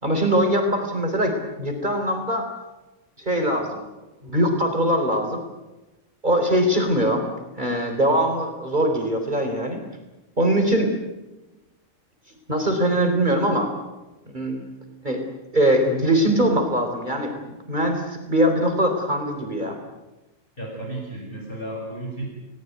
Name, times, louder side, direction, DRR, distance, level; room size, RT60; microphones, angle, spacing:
voice 1, 0.0-2.5 3.2-3.8 4.2-5.4 6.2-7.3 7.6-9.8 10.4-10.9 12.5-13.7 14.3-14.7 15.0-15.2 15.5-19.8, right 1 dB, 35° right, 3 dB, 3.9 m, -22 dB
voice 2, 20.6-22.3, right 1 dB, 40° left, -2 dB, 7.4 m, -33 dB
30.0 x 19.5 x 9.4 m, 1.1 s
omnidirectional pair, 1.4 m